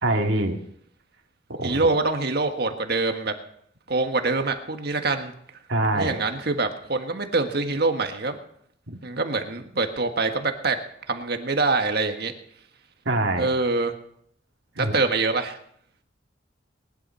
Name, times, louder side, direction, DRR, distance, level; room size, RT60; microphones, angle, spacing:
voice 1, 0.0-0.6 1.5-1.9 5.7-6.2 13.1-13.5 14.8-14.9, right 2 dB, 75° right, 3 dB, 2.2 m, -24 dB
voice 2, 1.6-3.3 3.9-5.3 5.9-8.4 9.0-10.8 11.1-12.3 13.4-13.9 14.8-15.6, right 3 dB, 55° right, 6 dB, 1.6 m, -25 dB
20.0 x 11.5 x 5.6 m, 0.69 s
head